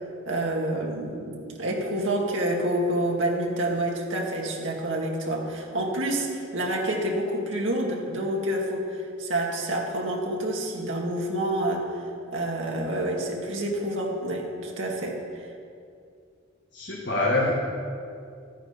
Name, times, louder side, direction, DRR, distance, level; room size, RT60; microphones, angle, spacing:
voice 1, 0.3-11.9 12.3-15.5, right 1 dB, 85° right, -1 dB, 2.0 m, -28 dB
voice 2, 16.7-17.5, left 2 dB, 65° left, -3 dB, 1.6 m, -25 dB
13.5 x 9.1 x 5.2 m, 2.4 s
head